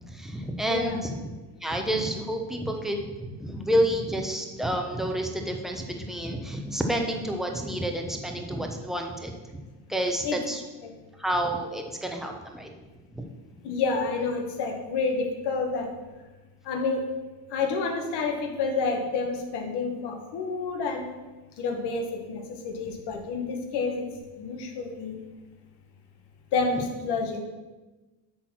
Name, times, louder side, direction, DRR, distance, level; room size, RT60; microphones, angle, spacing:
voice 1, 0.1-1.2 1.6-9.6 9.9-10.6 11.2-12.7, right 1 dB, ahead, 2 dB, 1.0 m, -29 dB
voice 2, 0.7-1.0 10.2-10.4 10.8-11.0 13.6-15.9 16.6-17.0 17.5-21.1 21.6-24.1 24.4-25.2 26.5-27.4, left 4 dB, 65° left, 3 dB, 1.6 m, -29 dB
8.3 x 4.2 x 6.2 m, 1.2 s
supercardioid pair, 105°, 43 cm